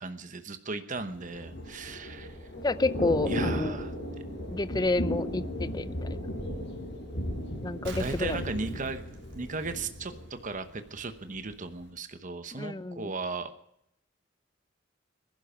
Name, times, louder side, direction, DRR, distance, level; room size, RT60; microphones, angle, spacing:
voice 1, 0.0-2.5 3.2-3.9 8.0-9.0 9.3-13.5, right 3 dB, 45° right, 9 dB, 1.0 m, -36 dB
Thunder / Rain, 1.1-11.0 11.4-11.6, equal, 65° left, 6.3 m, -35 dB
voice 2, 2.6-3.8 4.5-6.1 7.6-8.4 12.6-13.1, left 2 dB, 20° left, 15 dB, 0.5 m, -29 dB
Explosion, 7.8-10.4 10.8-10.9, right 1 dB, 80° right, 3.3 m, -41 dB
20.0 x 11.5 x 5.1 m, 0.76 s
head